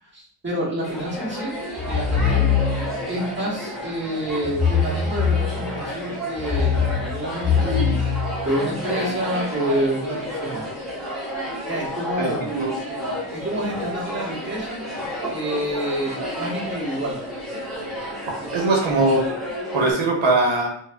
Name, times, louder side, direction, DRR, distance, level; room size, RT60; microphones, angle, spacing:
voice 1, 0.0-1.6 1.8-2.5 3.1-8.2 8.4-10.6 11.7-12.5 13.3-14.8 15.3-17.2 18.5-19.0, right 1 dB, 25° right, -6 dB, 1.3 m, -28 dB
sound 1, 0.8-19.9, equal, ahead, 1.3 m, -31 dB
sound 2, 1.8-3.1 4.4-5.9 6.4-8.9, left 6 dB, 25° left, 0.8 m, -23 dB
voice 2, 12.2-12.7 18.5-19.2 19.7-20.7, right 2 dB, 85° right, -1 dB, 0.8 m, -20 dB
4.5 x 2.2 x 2.2 m, 0.63 s
wide cardioid pair, 115°, 45 cm